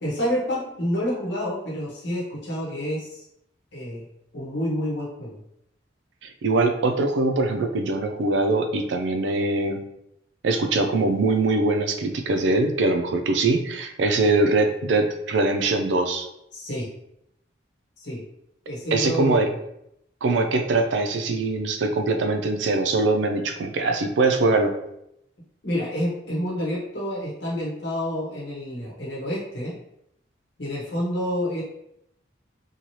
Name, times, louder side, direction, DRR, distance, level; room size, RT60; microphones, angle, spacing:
voice 1, 0.0-3.2 3.7-4.0 4.3-5.4 16.5-16.9 18.0-18.2 18.7-19.6 25.6-29.8 30.6-31.6, equal, 70° left, -5 dB, 0.9 m, -28 dB
voice 2, 6.2-9.9 10.4-16.3 18.9-19.5 20.2-24.7, right 3 dB, 80° right, 5 dB, 0.4 m, -22 dB
2.7 x 2.3 x 3.1 m, 0.78 s
head